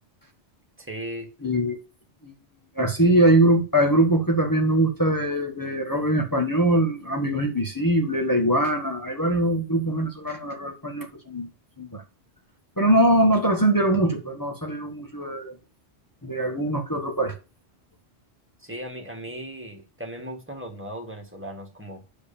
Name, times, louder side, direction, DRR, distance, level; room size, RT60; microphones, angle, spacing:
voice 1, 0.8-1.3 3.0-3.1 18.6-22.0, right 1 dB, 10° right, 2.0 m, -37 dB
voice 2, 1.4-1.8 2.2-2.4 2.7-11.5 11.8-12.0 12.8-15.6 16.2-17.3, right 1 dB, 15° left, 1.3 m, -22 dB
8.6 x 4.9 x 6.9 m
omnidirectional pair, 1.2 m